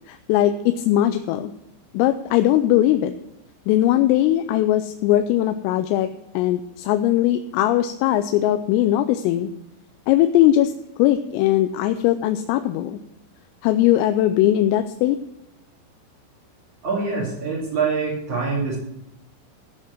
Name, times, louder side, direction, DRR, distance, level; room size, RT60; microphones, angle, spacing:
voice 1, 0.1-1.5 1.9-3.1 3.7-6.1 6.3-9.5 10.1-10.7 11.0-13.0 13.6-15.2, left 13 dB, 85° left, 8 dB, 3.3 m, -19 dB
voice 2, 16.8-18.8, right 4 dB, 40° right, -7 dB, 4.3 m, -24 dB
16.0 x 5.9 x 7.4 m, 0.83 s
omnidirectional pair, 5.9 m